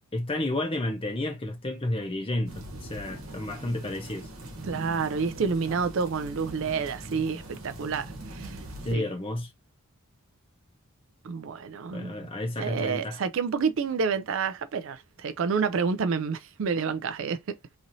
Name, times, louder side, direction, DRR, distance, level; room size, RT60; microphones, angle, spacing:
voice 1, 0.1-4.3 8.8-9.5 11.9-13.2, left 1 dB, 25° left, 0.7 m, -31 dB
sound 1, 2.5-8.9, right 1 dB, 80° right, 1.1 m, -41 dB
voice 2, 4.7-8.6 8.9-9.0 11.2-12.3 12.6-17.8, right 5 dB, 65° right, 0.4 m, -29 dB
3.0 x 2.7 x 2.6 m
head